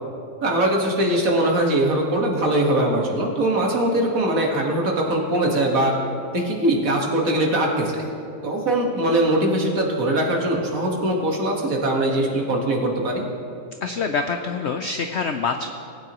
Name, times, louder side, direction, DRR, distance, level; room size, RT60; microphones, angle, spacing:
voice 1, 0.4-5.9 6.3-8.0 8.4-13.2, right 1 dB, 55° right, 0 dB, 1.9 m, -21 dB
voice 2, 13.8-15.7, left 5 dB, 80° left, 6 dB, 0.6 m, -25 dB
19.0 x 9.2 x 3.0 m, 2.5 s
omnidirectional pair, 1.8 m